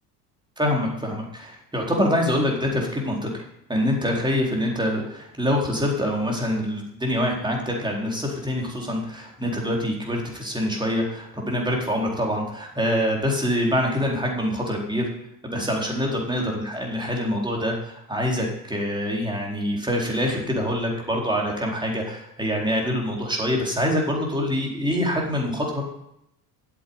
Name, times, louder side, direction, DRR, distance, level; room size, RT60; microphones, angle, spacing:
voice 1, 0.6-3.3 3.7-15.1 15.4-25.8, equal, 10° right, -1 dB, 4.3 m, -25 dB
8.5 x 8.1 x 8.8 m, 0.80 s
hypercardioid pair, 70°, 48 cm